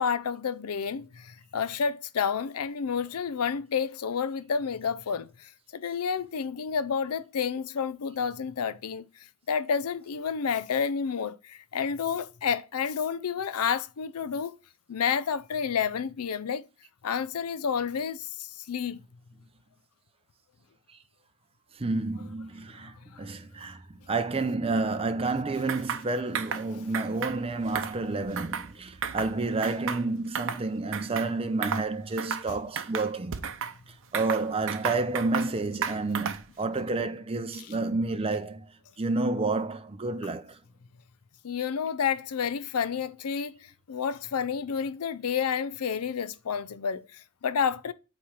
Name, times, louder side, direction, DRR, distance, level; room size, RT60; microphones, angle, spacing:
voice 1, 0.0-5.3 5.7-9.0 9.5-14.6 14.9-16.6 17.0-19.0 23.1-23.2 32.5-32.6 37.6-37.7 41.4-47.9, left 6 dB, 80° left, 0.5 m, -30 dB
voice 2, 21.8-22.9 23.2-23.8 24.1-33.4 34.1-38.6 39.0-40.5, right 3 dB, 25° right, 0.6 m, -30 dB
sound 1, 25.7-26.0 26.3-26.6 26.9-27.4 27.7-28.7 29.0-29.3 29.6-30.6 30.9-31.3 31.6-31.9 32.2-32.5 32.8-33.7 34.1-35.5 35.8-36.5, right 7 dB, 60° right, 0.7 m, -33 dB
8.4 x 3.2 x 5.7 m
head